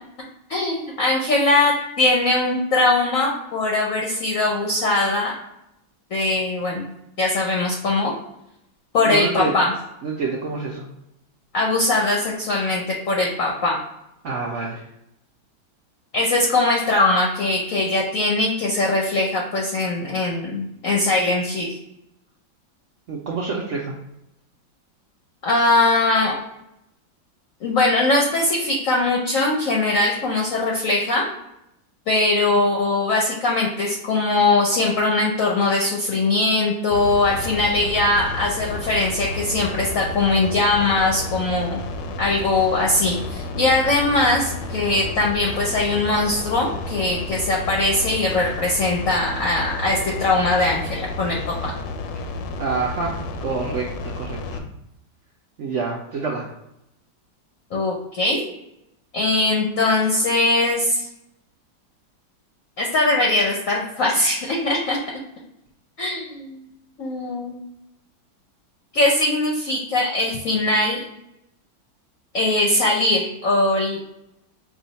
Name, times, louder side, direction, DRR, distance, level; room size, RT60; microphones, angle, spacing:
voice 1, 0.5-5.3 6.1-6.9 7.2-8.1 8.9-9.7 11.5-13.8 16.1-21.7 25.4-26.4 27.6-31.3 32.1-41.8 42.2-51.7 57.7-58.4 59.1-61.1 62.8-65.0 66.0-66.6 67.0-67.6 68.9-71.0 72.3-74.0, left 2 dB, 60° left, -2 dB, 0.9 m, -21 dB
voice 2, 9.0-9.5 10.0-10.9 14.2-14.8 23.1-23.9 52.6-54.6 55.6-56.5, right 4 dB, 80° right, -2 dB, 0.6 m, -27 dB
sound 1, 36.9-54.6, left 3 dB, 75° left, 1.2 m, -31 dB
4.9 x 2.4 x 3.9 m, 0.83 s
omnidirectional pair, 2.0 m